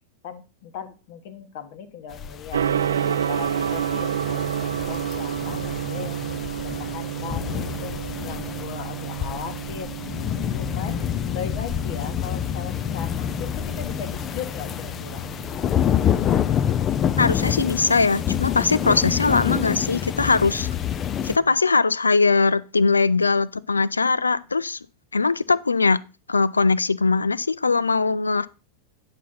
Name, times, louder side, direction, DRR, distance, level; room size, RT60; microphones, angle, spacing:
voice 1, 0.2-2.6 2.9-10.0 10.5-11.0 11.3-15.3, left 8 dB, 50° left, 1.3 m, -38 dB
sound 1, 2.1-21.4, left 9 dB, 30° left, 0.6 m, -27 dB
Gong, 2.5-21.5, right 9 dB, 65° right, 0.4 m, -31 dB
voice 2, 17.2-20.7 21.2-24.8 25.1-26.0 26.3-28.5, left 4 dB, 75° left, 0.4 m, -21 dB
9.9 x 5.9 x 4.1 m
figure-of-eight pair, 90°, 0 cm